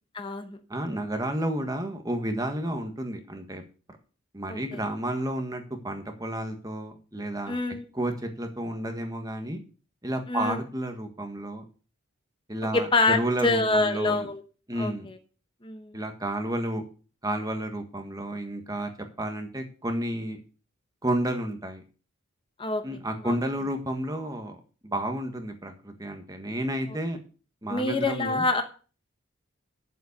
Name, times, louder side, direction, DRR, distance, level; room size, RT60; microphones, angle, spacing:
voice 1, 0.1-0.6 4.5-4.8 7.5-7.8 10.3-10.6 12.7-14.4 14.8-15.2 15.6-16.0 22.6-22.8 23.2-23.3 26.9-27.0 27.7-28.6, left 3 dB, 25° left, 6 dB, 1.1 m, -26 dB
voice 2, 0.7-3.6 4.3-7.6 7.9-9.6 10.0-11.6 12.5-14.3 14.7-15.1 15.9-16.8 17.2-18.9 19.2-20.4 21.0-21.8 22.8-24.6 24.8-27.2 27.6-28.4, right 1 dB, 15° right, 5 dB, 1.5 m, -31 dB
8.5 x 7.4 x 6.7 m, 0.38 s
head